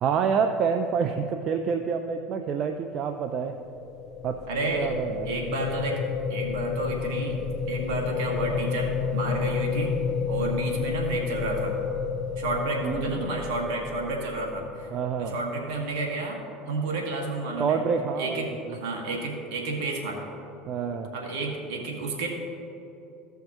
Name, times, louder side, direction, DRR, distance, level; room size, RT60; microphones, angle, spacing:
voice 1, 0.0-3.6 4.2-4.4 4.7-5.3 12.8-13.3 14.9-15.3 17.6-18.7 20.7-21.1, right 6 dB, 50° right, 6 dB, 0.5 m, -27 dB
sound 1, 3.5-15.7, left 6 dB, 50° left, 0.5 m, -31 dB
voice 2, 4.5-4.9 5.3-6.0 6.3-7.4 7.7-10.0 10.3-11.8 12.4-14.9 15.2-16.4 16.7-17.8 18.2-20.3 21.1-22.3, right 2 dB, 70° right, 0 dB, 1.8 m, -31 dB
15.5 x 5.7 x 3.0 m, 2.8 s
hypercardioid pair, 85°, 0 cm